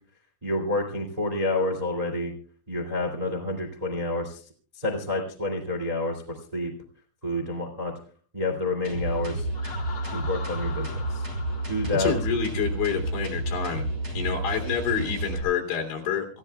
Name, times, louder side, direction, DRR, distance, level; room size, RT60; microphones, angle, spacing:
voice 1, 0.4-2.3 2.7-4.4 4.8-6.7 7.2-7.9 8.3-9.5 10.0-11.3 11.7-12.1, left 2 dB, 35° right, 1 dB, 0.6 m, -29 dB
sound 1, 8.8-15.4, right 1 dB, 20° right, 3.6 m, -31 dB
Laughter, 9.5-13.2, left 5 dB, 80° left, 1.0 m, -42 dB
voice 2, 12.0-13.9 14.1-16.3, left 6 dB, 60° left, 1 dB, 5.2 m, -28 dB
27.5 x 15.5 x 2.3 m, 0.43 s
omnidirectional pair, 5.8 m